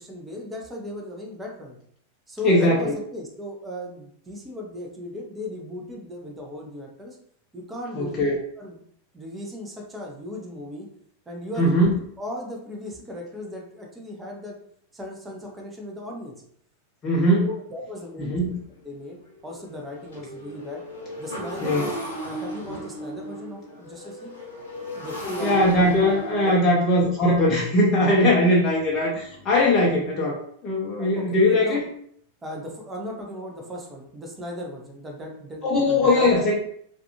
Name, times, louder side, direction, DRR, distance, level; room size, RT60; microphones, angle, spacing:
voice 1, 0.0-1.8 2.3-7.2 7.5-8.2 8.6-8.8 9.1-10.9 11.3-11.7 12.2-14.6 14.9-16.3 17.4-18.4 18.8-19.2 19.4-20.8 21.2-21.9 22.2-24.3 24.9-25.7 26.4-26.6 31.0-31.8 32.4-36.3, left 1 dB, 15° right, 0 dB, 0.7 m, -36 dB
voice 2, 2.4-3.0 7.9-8.4 11.6-12.0 17.0-17.5 18.2-18.6 21.6-21.9 25.4-31.9 35.6-36.5, left 1 dB, 30° left, -3 dB, 0.6 m, -20 dB
Motorcycle, 17.5-17.6 18.1-18.2 18.5-30.1, equal, 60° left, 0.9 m, -36 dB
2.4 x 2.3 x 2.8 m, 0.65 s
figure-of-eight pair, 90°, 0 cm